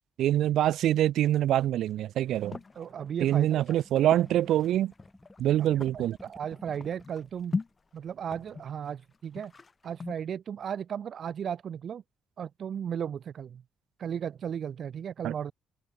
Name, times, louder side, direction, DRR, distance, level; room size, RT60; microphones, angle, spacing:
voice 1, 0.2-2.6 3.2-4.9 5.4-6.2 15.2-15.3, right 12 dB, 80° right, 1.1 m, -25 dB
sound 1, 1.9-2.9 3.2-7.7 7.9-10.1, left 4 dB, 30° left, 4.9 m, -40 dB
sound 2, 2.7-7.3 7.6-7.7 8.0-8.6, left 1 dB, 5° left, 5.6 m, -54 dB
voice 2, 2.7-3.8 5.6-5.7 5.9-7.5 7.9-9.5 9.8-12.0 12.4-13.6 14.0-15.5, right 8 dB, 60° right, 0.7 m, -35 dB
cardioid pair, 90°, 0 cm